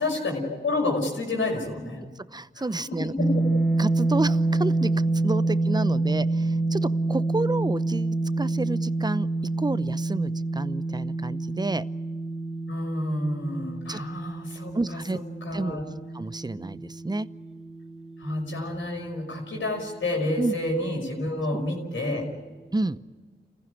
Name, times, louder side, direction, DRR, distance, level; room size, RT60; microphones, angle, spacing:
voice 1, 0.0-2.0 2.6-2.7 3.2-3.4 12.7-15.8 18.2-22.3, left 2 dB, 80° left, 0 dB, 5.6 m, -29 dB
voice 2, 2.2-3.1 3.8-9.3 9.6-11.8 13.9-14.0 14.7-15.2 15.5-15.8 16.1-17.3 20.4-20.5 21.5-21.6 22.7-23.0, right 2 dB, 20° right, 15 dB, 0.7 m, -30 dB
sound 1, 3.2-19.1, right 2 dB, ahead, 1.7 m, -27 dB
28.0 x 15.5 x 9.9 m, 1.4 s
cardioid pair, 45°, 20 cm